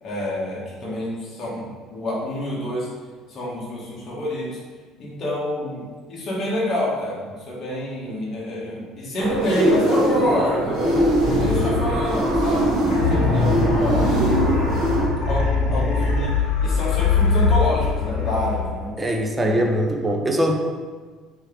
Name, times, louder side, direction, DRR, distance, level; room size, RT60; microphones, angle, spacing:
voice 1, 0.0-2.9 3.3-4.6 5.0-5.8 6.1-12.7 13.1-14.1 15.3-16.3 16.6-19.0 19.4-19.7, left 1 dB, 35° left, -6 dB, 1.4 m, -27 dB
sound 1, 9.2-15.1, right 1 dB, 50° right, 1.0 m, -21 dB
sound 2, 11.2-12.4 12.9-18.8, left 4 dB, 75° left, 0.9 m, -22 dB
voice 2, 19.0-20.6, equal, 15° right, 2 dB, 0.5 m, -22 dB
4.5 x 3.4 x 3.3 m, 1.4 s
cardioid pair, 150°, 0 cm